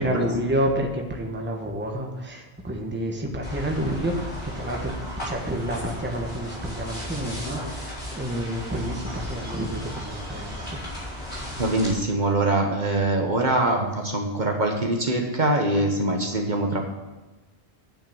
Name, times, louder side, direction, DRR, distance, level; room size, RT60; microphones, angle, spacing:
voice 1, 0.0-10.8, right 1 dB, 10° right, 1 dB, 1.2 m, -29 dB
sound 1, 3.4-12.0, left 1 dB, 40° left, 3.8 m, -35 dB
voice 2, 11.6-16.9, right 2 dB, 45° right, 2 dB, 1.2 m, -23 dB
9.1 x 5.7 x 7.1 m, 1.1 s
omnidirectional pair, 1.1 m